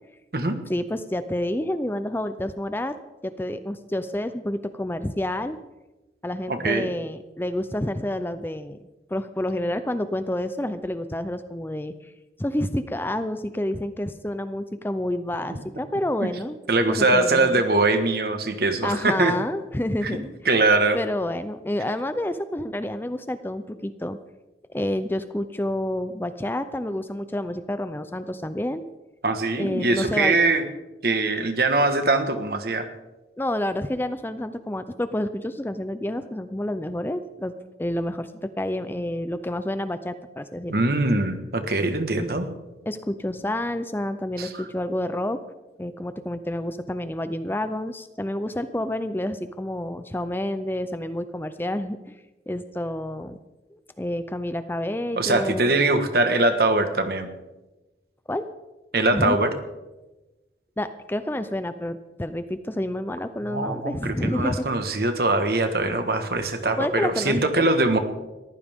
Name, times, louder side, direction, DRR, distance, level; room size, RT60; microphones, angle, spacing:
voice 1, 0.7-3.0 3.2-5.6 6.2-8.8 9.1-12.1 12.4-16.6 16.9-17.6 18.8-20.3 20.9-24.2 24.7-28.9 29.6-30.4 33.4-37.5 37.8-40.8 42.9-45.4 45.8-52.0 52.5-53.4 53.7-55.7 58.3-58.5 59.1-59.4 60.8-64.6 66.8-68.0, left 1 dB, 10° left, 11 dB, 0.5 m, -29 dB
voice 2, 6.5-6.9 15.5-15.6 16.2-16.3 16.7-19.3 20.0-20.2 20.4-21.0 29.2-30.6 31.0-32.9 40.7-42.5 44.4-44.5 55.2-57.3 58.9-59.5 63.5-68.0, right 2 dB, 55° right, 8 dB, 1.5 m, -22 dB
21.5 x 14.5 x 3.6 m, 1.1 s
head